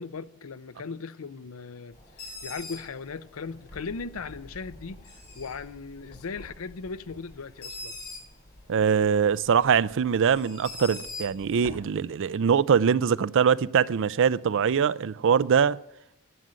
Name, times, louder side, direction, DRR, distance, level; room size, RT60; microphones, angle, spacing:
voice 1, 0.0-7.9, left 4 dB, 75° left, 0.6 m, -38 dB
Bird, 1.9-11.8, left 2 dB, 45° left, 4.2 m, -44 dB
voice 2, 8.7-15.8, right 7 dB, 60° right, 0.4 m, -23 dB
11.0 x 9.5 x 7.7 m
head